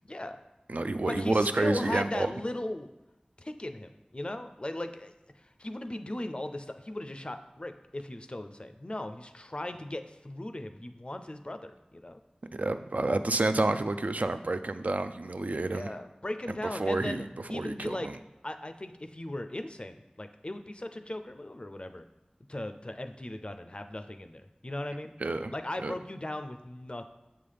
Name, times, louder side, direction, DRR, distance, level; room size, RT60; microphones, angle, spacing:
voice 1, 0.0-0.4 1.1-2.9 3.4-12.2 15.7-18.1 18.4-22.0 22.5-25.1 25.5-27.0, left 1 dB, 40° left, 8 dB, 0.4 m, -38 dB
voice 2, 0.7-2.3 12.5-15.9 16.7-18.2 25.2-25.5 25.8-25.9, right 2 dB, 70° right, 9 dB, 0.3 m, -29 dB
6.9 x 5.5 x 3.3 m, 0.96 s
wide cardioid pair, 45°, 3 cm